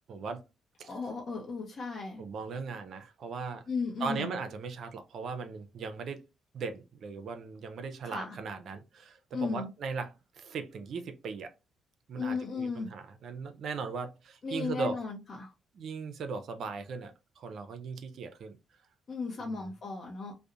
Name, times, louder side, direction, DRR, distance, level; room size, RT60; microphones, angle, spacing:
voice 1, 0.1-0.4 0.8-0.9 2.2-3.7 4.0-6.2 6.5-11.5 12.1-15.0 15.7-18.6 19.4-19.7, right 4 dB, 65° right, 0.4 m, -38 dB
voice 2, 0.9-2.2 3.7-4.3 8.0-8.4 9.3-9.7 12.1-12.9 14.4-15.5 19.1-20.3, left 4 dB, 50° left, 0.6 m, -35 dB
2.4 x 2.0 x 2.7 m
cardioid pair, 90°, 0 cm